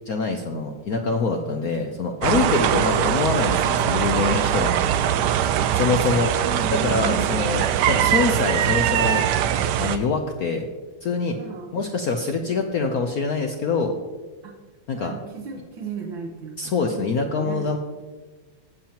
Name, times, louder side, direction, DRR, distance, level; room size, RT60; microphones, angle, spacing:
voice 1, 0.0-4.7 5.7-6.3 6.8-9.2 9.8-10.6 11.0-11.4 11.7-13.9 14.9-15.1 16.6-17.8, left 4 dB, 70° left, 4 dB, 0.8 m, -24 dB
sound 1, 2.2-10.0, right 10 dB, 85° right, 0.9 m, -22 dB
voice 2, 5.2-7.3 7.8-8.2 11.3-11.8 14.4-14.6 14.9-17.7, right 4 dB, 65° right, 0 dB, 1.6 m, -35 dB
16.5 x 7.2 x 2.9 m, 1.3 s
omnidirectional pair, 2.4 m